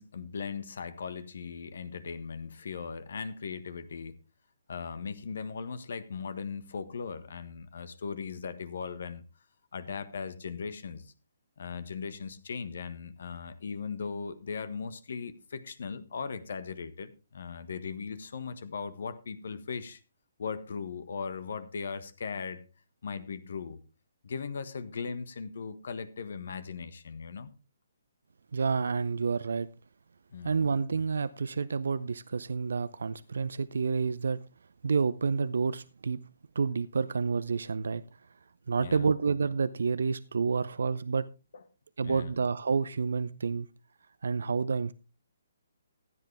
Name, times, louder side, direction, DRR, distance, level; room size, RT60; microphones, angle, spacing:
voice 1, 0.0-4.1 4.7-9.2 9.7-11.1 11.6-20.0 20.4-22.6 23.0-23.8 24.2-27.5 30.3-30.6 38.8-39.1 41.5-41.6 42.0-42.3, left 5 dB, 60° left, 1.4 m, -38 dB
voice 2, 28.5-29.7 30.4-34.4 34.8-36.2 36.6-38.0 38.7-41.2 42.0-43.7 44.2-44.9, right 5 dB, 70° right, 0.6 m, -29 dB
15.5 x 10.0 x 3.4 m
figure-of-eight pair, 135°, 0 cm